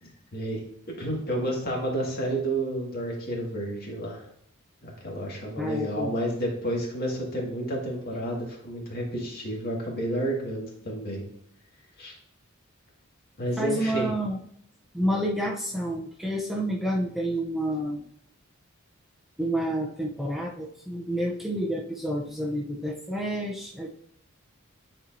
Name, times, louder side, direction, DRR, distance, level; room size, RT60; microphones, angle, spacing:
voice 1, 0.0-4.2 4.8-11.2 12.0-12.2 13.4-14.1, right 1 dB, 45° left, -2 dB, 1.8 m, -30 dB
voice 2, 5.6-6.2 13.6-14.4 14.9-18.0 19.4-23.9, right 1 dB, ahead, -3 dB, 0.5 m, -29 dB
9.8 x 4.3 x 2.6 m, 0.69 s
head